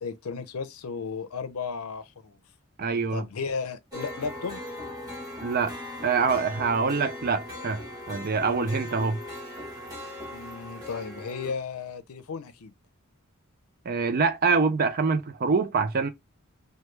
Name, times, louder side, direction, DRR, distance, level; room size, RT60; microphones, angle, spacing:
voice 1, 0.0-2.4 3.1-4.6 10.3-12.7, left 5 dB, 80° left, 0.5 m, -34 dB
voice 2, 2.8-3.2 5.4-5.7 6.0-7.8 8.1-9.2 13.9-16.1, right 4 dB, 45° right, 0.4 m, -25 dB
sound 1, 3.9-11.5, left 1 dB, 15° right, 1.2 m, -39 dB
3.1 x 2.2 x 3.2 m
head